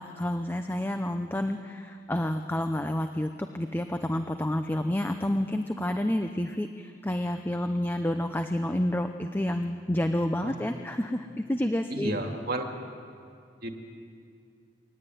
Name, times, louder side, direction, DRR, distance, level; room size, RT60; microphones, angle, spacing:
voice 1, 0.0-12.2, left 1 dB, 10° left, 7 dB, 0.7 m, -29 dB
voice 2, 11.9-12.7 13.6-13.8, right 1 dB, 55° right, 3 dB, 2.3 m, -32 dB
23.5 x 18.0 x 9.3 m, 2.4 s
head